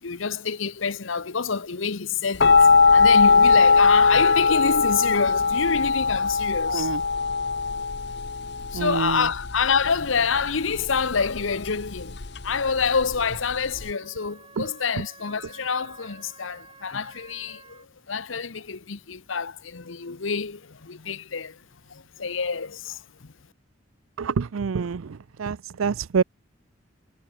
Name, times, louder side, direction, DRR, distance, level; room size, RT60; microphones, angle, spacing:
voice 1, 0.0-6.9 8.7-23.3, left 5 dB, 75° left, 1.0 m, -27 dB
sound 1, 2.4-13.9, left 4 dB, 55° left, 1.0 m, -20 dB
voice 2, 6.7-7.0 8.7-9.3 14.6-14.7 24.2-26.2, right 5 dB, 90° right, 0.5 m, -27 dB
Wind instrument woodwind instrument, 12.8-17.9, right 4 dB, 25° right, 5.8 m, -51 dB
head